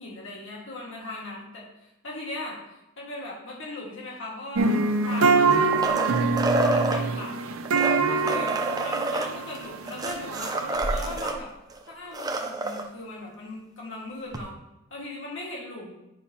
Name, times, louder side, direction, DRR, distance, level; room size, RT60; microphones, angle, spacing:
voice 1, 0.0-1.7 2.0-2.6 3.0-7.6 8.1-8.5 8.8-10.6 10.9-11.5 11.9-14.5 14.9-15.9, left 2 dB, 60° left, -3 dB, 1.8 m, -38 dB
sound 1, 4.6-11.3, right 4 dB, 75° right, 0.5 m, -25 dB
sound 2, 5.1-7.0 7.6-11.4 11.7-11.8 12.0-12.8 14.3-14.4, right 2 dB, 15° right, 0.5 m, -28 dB
9.6 x 5.5 x 2.8 m, 0.92 s
head